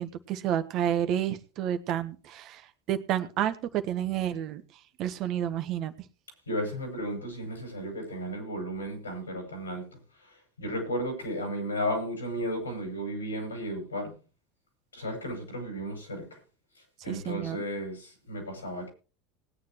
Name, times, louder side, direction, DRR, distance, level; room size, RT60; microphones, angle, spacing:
voice 1, 0.0-4.6 5.0-5.9 17.1-17.6, right 10 dB, 50° right, 1.4 m, -30 dB
voice 2, 6.5-14.1 14.9-16.4 17.0-18.9, equal, 85° left, 6.1 m, -34 dB
19.5 x 9.7 x 3.1 m
figure-of-eight pair, 75°, 0 cm